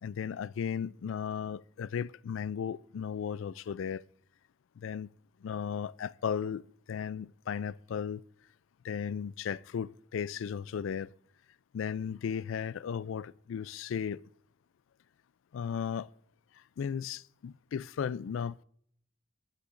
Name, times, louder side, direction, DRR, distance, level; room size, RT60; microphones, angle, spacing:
voice 1, 0.0-4.0 4.8-5.1 5.4-6.6 6.9-8.2 8.8-11.1 11.7-14.2 15.5-16.1 16.8-18.6, left 7 dB, 75° left, 0.3 m, -35 dB
19.5 x 9.9 x 2.5 m
head